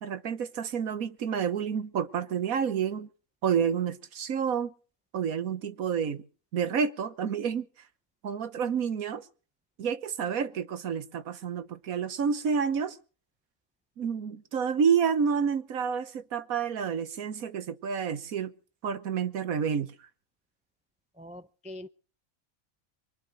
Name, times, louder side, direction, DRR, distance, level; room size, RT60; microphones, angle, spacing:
voice 1, 0.0-3.1 3.4-4.7 5.1-6.2 6.5-7.7 8.2-9.2 9.8-13.0 14.0-18.5 18.8-19.9, right 7 dB, 85° right, 1.5 m, -29 dB
voice 2, 21.2-21.9, left 1 dB, 10° right, 0.3 m, -43 dB
23.5 x 9.5 x 6.3 m
omnidirectional pair, 1.4 m